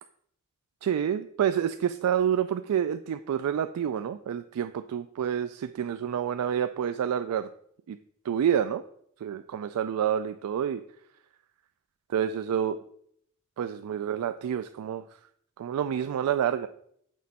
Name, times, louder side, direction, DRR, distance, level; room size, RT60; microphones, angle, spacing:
voice 1, 0.8-7.5 7.9-8.0 8.2-8.8 9.2-10.8 12.1-12.8 13.6-15.0 15.6-16.7, right 9 dB, 85° right, 11 dB, 0.3 m, -28 dB
6.4 x 5.0 x 4.1 m, 0.68 s
head